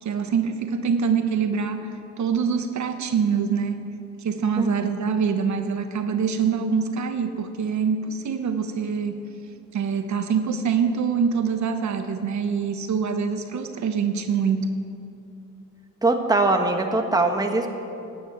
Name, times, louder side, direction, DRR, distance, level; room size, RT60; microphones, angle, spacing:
voice 1, 0.0-3.8 4.2-9.2 9.7-14.7, right 6 dB, 65° right, 7 dB, 1.0 m, -25 dB
voice 2, 4.6-5.0 16.0-17.7, right 2 dB, 10° right, 4 dB, 1.3 m, -22 dB
13.0 x 9.6 x 9.0 m, 2.7 s
cardioid pair, 120°, 31 cm